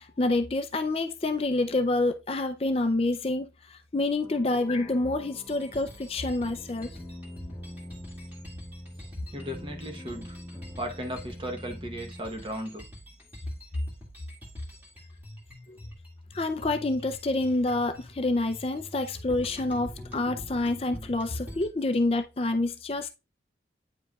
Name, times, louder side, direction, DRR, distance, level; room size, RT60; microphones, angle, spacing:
voice 1, 0.0-6.9 15.7-15.8 16.3-23.1, left 2 dB, 30° left, 0.4 m, -27 dB
sound 1, 4.2-12.2, left 1 dB, 15° left, 1.6 m, -44 dB
sound 2, 5.5-21.7, equal, 10° right, 1.9 m, -46 dB
voice 2, 9.0-10.4 10.8-12.9, equal, 30° right, 0.9 m, -36 dB
9.1 x 4.9 x 2.3 m
head